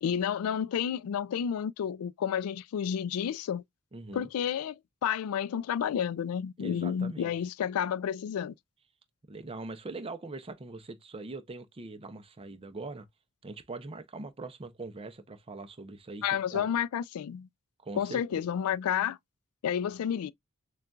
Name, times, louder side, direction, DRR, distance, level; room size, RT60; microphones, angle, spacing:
voice 1, 0.0-3.6 4.1-8.5 16.2-17.5 18.0-19.2 19.6-20.3, left 8 dB, 75° left, 0.3 m, -30 dB
voice 2, 3.9-4.3 6.6-7.3 9.3-13.1 13.4-16.2 16.5-16.7 17.8-18.5 19.8-20.0, right 3 dB, 25° right, 0.5 m, -42 dB
6.5 x 2.3 x 2.4 m
head